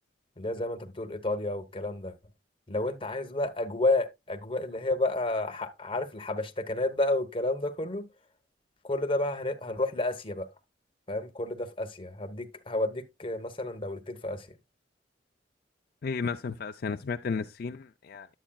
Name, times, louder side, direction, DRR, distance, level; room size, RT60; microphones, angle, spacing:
voice 1, 0.4-2.1 2.7-8.1 8.8-10.5 11.1-14.5, left 2 dB, 30° left, 1.0 m, -31 dB
voice 2, 16.0-18.3, left 5 dB, 55° left, 0.4 m, -33 dB
10.0 x 8.1 x 2.3 m
head